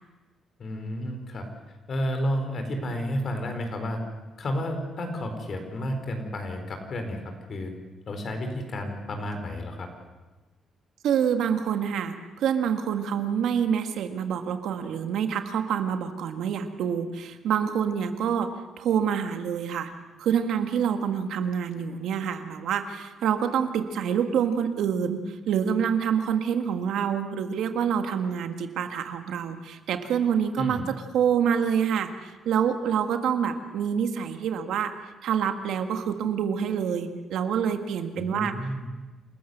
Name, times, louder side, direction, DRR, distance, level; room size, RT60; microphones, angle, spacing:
voice 1, 0.6-1.5 1.9-4.0 4.4-7.2 7.5-7.7 8.1-9.9 30.6-30.8 38.2-38.9, equal, 50° left, 5 dB, 4.4 m, -31 dB
voice 2, 11.0-18.5 18.8-19.9 20.2-34.9 35.2-38.6, right 8 dB, 80° right, 7 dB, 1.7 m, -27 dB
28.5 x 13.5 x 8.0 m, 1.2 s
cardioid pair, 90°, 0 cm